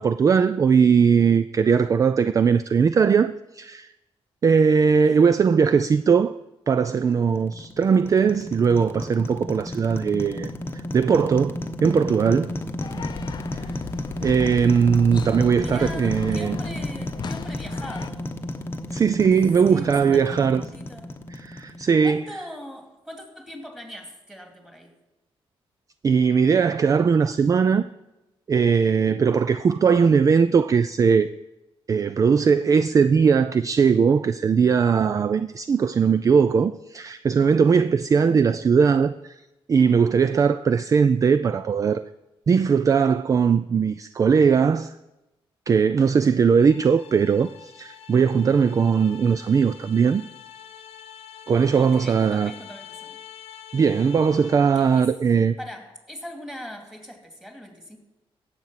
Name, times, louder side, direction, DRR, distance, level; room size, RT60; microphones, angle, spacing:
voice 1, 0.0-3.9 4.4-6.4 6.7-10.5 10.9-12.5 13.5-13.6 14.2-16.6 18.9-20.6 21.3-22.2 26.0-27.9 28.5-31.3 31.9-39.3 39.7-42.0 42.5-45.0 45.7-50.2 51.5-52.5 53.7-55.6, right 6 dB, 35° right, 0.3 m, -19 dB
voice 2, 5.0-5.3 15.6-18.3 19.6-21.1 22.0-24.9 29.8-30.0 51.8-53.2 54.7-55.1 55.6-58.0, equal, 5° right, 2.6 m, -40 dB
sound 1, 7.1-22.3, left 1 dB, 20° left, 0.9 m, -33 dB
sound 2, 12.8-18.1, left 7 dB, 45° left, 0.6 m, -37 dB
sound 3, 46.5-55.0, left 10 dB, 85° left, 0.9 m, -45 dB
17.0 x 7.9 x 5.7 m
cardioid pair, 115°, 10 cm